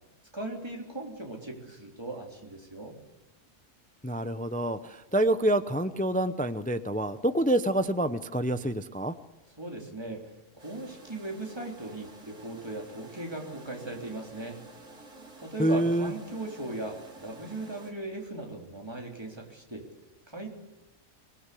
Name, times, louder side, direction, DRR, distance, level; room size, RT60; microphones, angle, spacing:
voice 1, 0.3-3.0 9.6-10.2 10.6-14.6 15.4-19.9 20.3-20.5, right 2 dB, 20° right, 1 dB, 3.5 m, -38 dB
voice 2, 4.0-9.1 15.6-16.1, right 1 dB, 10° left, 11 dB, 0.6 m, -27 dB
sound 1, 10.6-17.9, right 2 dB, 70° right, 3.2 m, -51 dB
24.0 x 19.0 x 8.4 m, 1.0 s
omnidirectional pair, 1.3 m